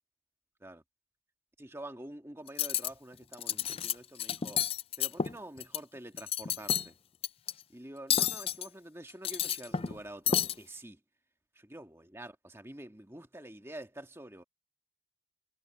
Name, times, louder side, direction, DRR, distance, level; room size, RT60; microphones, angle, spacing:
voice 1, 1.6-4.6 5.0-7.0 7.7-11.0 11.5-14.4, right 1 dB, 15° right, 1.8 m, -47 dB
Cutlery silverware, 2.5-2.9 3.3-3.9 4.2-5.8 6.1-6.9 7.2-7.5 8.1-8.7 9.1-10.0 10.3-10.5, left 9 dB, 30° left, 0.3 m, -30 dB
head